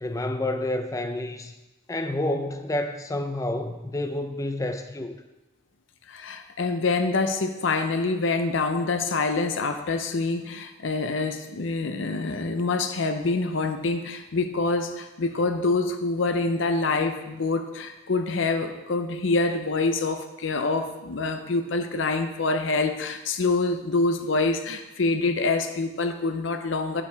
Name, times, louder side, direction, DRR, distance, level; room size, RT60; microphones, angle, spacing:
voice 1, 0.0-1.5 1.9-5.2, left 1 dB, 15° left, 7 dB, 0.4 m, -29 dB
voice 2, 6.1-27.0, left 3 dB, 75° left, 7 dB, 0.6 m, -26 dB
8.4 x 5.2 x 4.6 m, 1.0 s
head